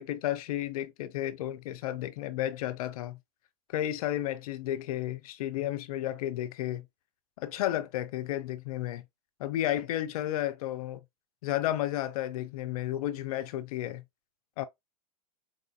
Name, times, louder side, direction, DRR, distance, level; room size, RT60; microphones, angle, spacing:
voice 1, 0.0-3.2 3.7-6.8 7.4-9.0 9.4-11.0 11.4-14.0 14.6-14.7, left 13 dB, 65° left, 0.5 m, -32 dB
4.1 x 2.5 x 2.4 m
hypercardioid pair, 100°, 20 cm